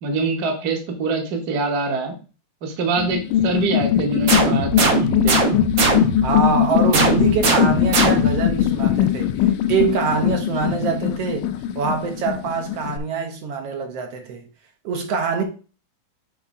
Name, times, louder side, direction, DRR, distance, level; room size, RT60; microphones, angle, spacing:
voice 1, 0.0-2.2 2.6-5.4, right 3 dB, 80° right, 0.8 m, -24 dB
sound 1, 3.0-13.0, left 11 dB, 85° left, 2.1 m, -21 dB
sound 2, 4.3-6.3 6.9-8.5, right 3 dB, 50° right, 1.5 m, -20 dB
voice 2, 6.2-14.5 14.8-15.4, right 5 dB, 65° right, 1.7 m, -24 dB
8.6 x 3.1 x 4.8 m
omnidirectional pair, 3.8 m